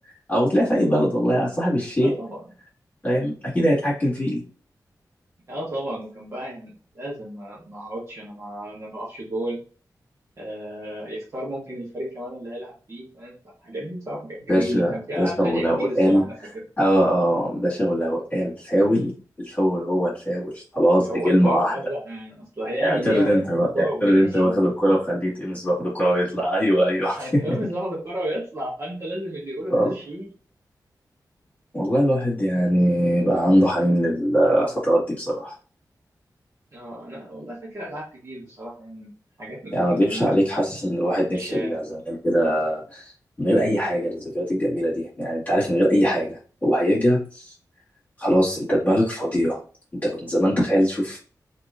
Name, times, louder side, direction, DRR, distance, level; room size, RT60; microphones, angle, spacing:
voice 1, 0.3-2.1 3.0-4.4 14.5-16.2 16.8-21.7 22.8-27.6 29.7-29.9 31.7-35.5 39.7-43.1 43.4-47.5 48.2-49.6 50.0-51.2, equal, 25° left, -7 dB, 1.8 m, -21 dB
voice 2, 2.0-2.4 5.5-9.6 10.4-16.3 21.1-23.4 23.7-24.6 27.0-30.3 36.7-39.1 39.4-40.5 41.3-41.8, right 1 dB, 45° right, -6 dB, 1.4 m, -33 dB
3.0 x 2.9 x 3.6 m, 0.39 s
wide cardioid pair, 110°, 7 cm